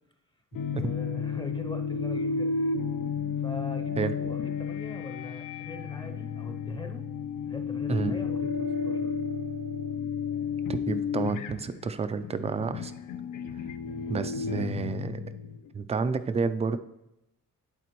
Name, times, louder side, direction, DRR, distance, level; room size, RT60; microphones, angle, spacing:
sound 1, 0.5-15.7, left 5 dB, 75° left, 0.6 m, -32 dB
voice 1, 0.7-2.5 3.4-7.1 7.5-9.1 13.8-14.3, left 2 dB, 15° left, 5 dB, 0.6 m, -42 dB
voice 2, 4.0-4.3 7.9-8.2 10.7-12.9 14.1-15.2 15.7-16.8, right 5 dB, 20° right, 12 dB, 0.3 m, -30 dB
11.0 x 4.2 x 3.0 m, 0.88 s
cardioid pair, 125°, 32 cm